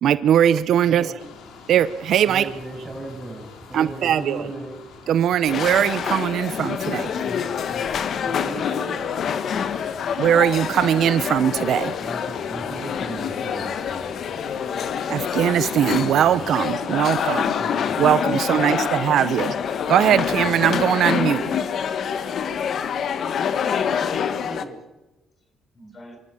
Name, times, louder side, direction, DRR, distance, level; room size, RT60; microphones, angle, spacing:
voice 1, 0.0-1.2 1.7-2.5 3.7-4.5 5.1-7.1 10.2-11.9 15.1-17.5 18.0-19.6 19.9-21.6, right 10 dB, 70° right, 0.7 m, -20 dB
sound 1, 1.2-17.4, left 4 dB, 80° left, 3.6 m, -44 dB
voice 2, 2.3-4.8 7.1-7.9 8.2-9.0 12.0-14.1 16.0-16.5 17.6-18.1, right 2 dB, 10° right, 7.3 m, -37 dB
sound 2, 5.5-24.6, left 7 dB, 60° left, 1.4 m, -26 dB
voice 3, 23.9-24.8 25.7-26.2, left 1 dB, 35° left, 5.5 m, -42 dB
25.0 x 13.5 x 8.8 m
cardioid pair, 95°, 0 cm